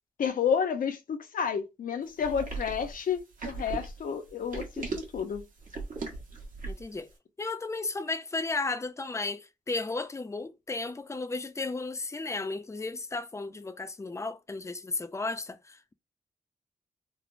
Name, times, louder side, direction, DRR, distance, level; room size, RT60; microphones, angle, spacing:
voice 1, 0.2-5.4, left 7 dB, 75° left, 0.6 m, -30 dB
sound 1, 2.2-7.0, right 3 dB, 70° right, 1.1 m, -37 dB
voice 2, 6.7-7.1 7.4-15.9, left 3 dB, 20° left, 0.4 m, -34 dB
3.2 x 2.0 x 2.4 m
cardioid pair, 70°, 14 cm